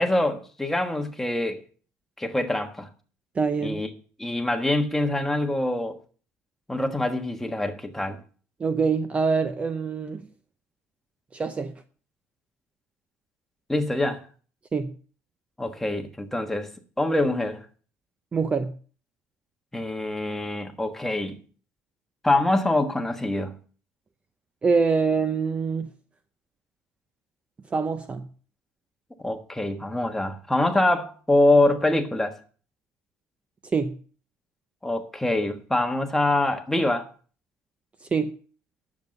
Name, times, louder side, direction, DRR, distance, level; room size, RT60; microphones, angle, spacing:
voice 1, 0.0-1.6 2.2-2.9 3.6-3.9 4.2-6.0 6.7-8.2 13.7-14.2 15.6-16.7 17.0-17.6 19.7-21.4 22.2-23.5 29.2-32.3 34.8-37.1, left 2 dB, 5° left, 1.4 m, -24 dB
voice 2, 3.4-3.8 8.6-10.2 11.3-11.7 14.7-15.0 18.3-18.8 24.6-25.9 27.7-28.3 33.7-34.0 38.1-38.3, right 5 dB, 25° right, 0.7 m, -24 dB
10.0 x 7.3 x 6.5 m
cardioid pair, 120°, 5 cm